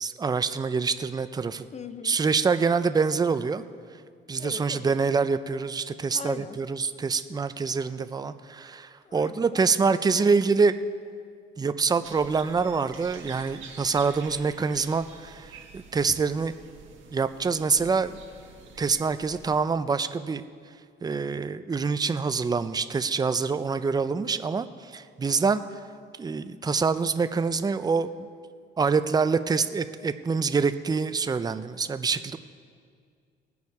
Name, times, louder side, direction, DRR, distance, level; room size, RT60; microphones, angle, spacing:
voice 1, 0.0-1.7 2.0-3.6 4.3-10.7 11.6-16.5 17.1-18.2 18.8-20.5 21.0-24.7 24.9-25.6 26.2-28.3 28.8-32.4, right 5 dB, 20° right, 11 dB, 0.5 m, -26 dB
voice 2, 1.7-2.2 4.4-4.9 6.1-6.6 9.0-9.7, left 6 dB, 35° left, 12 dB, 0.6 m, -40 dB
sound 1, 12.0-19.6, right 5 dB, 75° right, 1.5 m, -48 dB
19.0 x 7.1 x 4.8 m, 2.1 s
cardioid pair, 90°, 20 cm